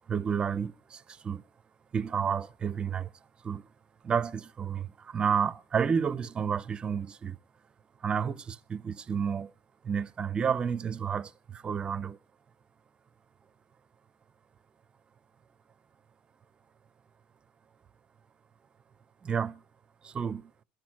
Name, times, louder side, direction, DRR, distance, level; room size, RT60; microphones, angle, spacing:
voice 1, 0.1-1.4 1.9-3.1 3.4-3.7 4.0-7.4 8.0-9.5 9.8-12.2 19.2-19.6 20.0-20.5, right 7 dB, 25° right, 0.5 m, -31 dB
13.5 x 6.3 x 8.9 m
cardioid pair, 135°, 4 cm